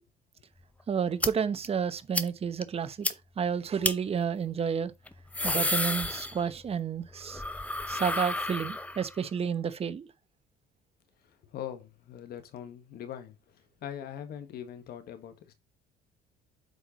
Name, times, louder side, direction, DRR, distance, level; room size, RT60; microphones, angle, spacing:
voice 1, 0.9-3.1 3.4-4.9 5.4-7.4 7.9-10.1, right 7 dB, 35° right, 0.9 m, -30 dB
sound 1, 1.2-1.3 1.6-1.7 2.1-2.3 2.6-2.7 3.0-3.1 3.8-3.9 5.1-6.7 7.0-9.2, left 2 dB, 10° left, 0.7 m, -31 dB
voice 2, 11.2-15.5, left 10 dB, 70° left, 1.6 m, -42 dB
8.1 x 4.5 x 4.3 m
cardioid pair, 110°, 17 cm